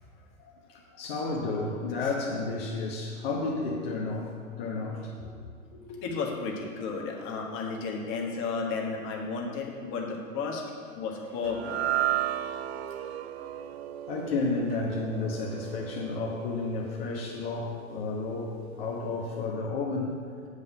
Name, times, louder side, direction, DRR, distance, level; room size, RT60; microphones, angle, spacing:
voice 1, 1.0-5.3 5.7-6.0 14.1-20.1, left 3 dB, 45° left, -3 dB, 1.2 m, -32 dB
voice 2, 6.0-10.6 10.9-12.4, left 4 dB, 30° left, 0 dB, 1.5 m, -33 dB
sound 1, 11.4-17.8, right 12 dB, 50° right, 0.5 m, -34 dB
8.1 x 5.3 x 7.3 m, 2.2 s
figure-of-eight pair, 105°, 42 cm